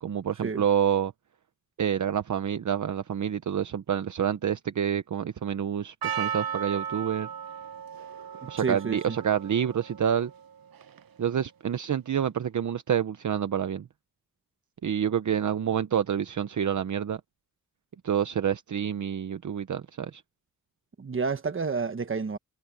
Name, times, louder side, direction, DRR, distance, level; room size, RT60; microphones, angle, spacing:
voice 1, 0.0-1.1 1.8-7.3 8.5-10.3 11.2-13.8 14.8-17.2 18.0-20.2, right 8 dB, 60° right, 0.8 m, -28 dB
Percussion, 6.0-11.2, right 8 dB, 85° right, 1.0 m, -36 dB
voice 2, 8.4-9.2 21.0-22.4, right 5 dB, 35° right, 1.4 m, -30 dB
wide cardioid pair, 170°, 34 cm